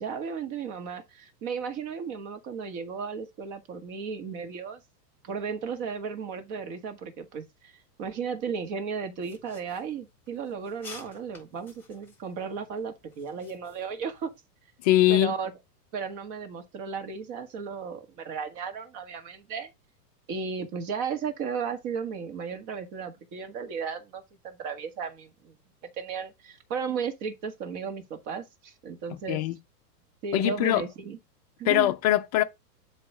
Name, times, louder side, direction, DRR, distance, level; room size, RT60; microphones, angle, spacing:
voice 1, 0.0-4.8 5.2-7.7 8.0-14.3 15.1-15.5 15.9-19.7 20.3-25.5 26.0-29.4 30.2-31.2 31.6-31.9, right 6 dB, 35° right, 1.7 m, -35 dB
sound 1, 9.2-14.4, left 3 dB, 5° left, 3.9 m, -52 dB
voice 2, 14.8-15.4 29.1-29.6 30.3-30.8 31.6-32.4, left 14 dB, 25° left, 0.4 m, -22 dB
7.7 x 3.1 x 6.0 m
hypercardioid pair, 140°, 49 cm